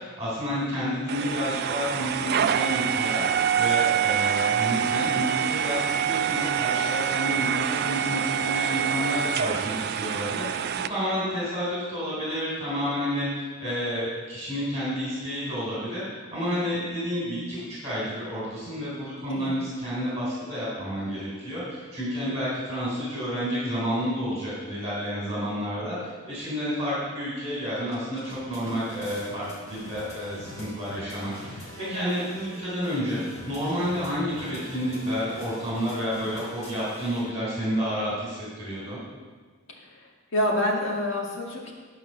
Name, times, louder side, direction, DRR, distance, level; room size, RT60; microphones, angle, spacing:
voice 1, 0.0-26.0 26.3-31.6 31.9-33.2 33.5-39.0, equal, 15° right, -8 dB, 3.4 m, -30 dB
sound 1, 1.1-10.9, right 8 dB, 55° right, 0.3 m, -26 dB
sound 2, 27.9-37.2, equal, 40° left, 3.2 m, -43 dB
voice 2, 31.8-32.1 39.8-41.7, left 1 dB, 70° left, -1 dB, 1.9 m, -28 dB
11.0 x 5.3 x 6.6 m, 1.4 s
head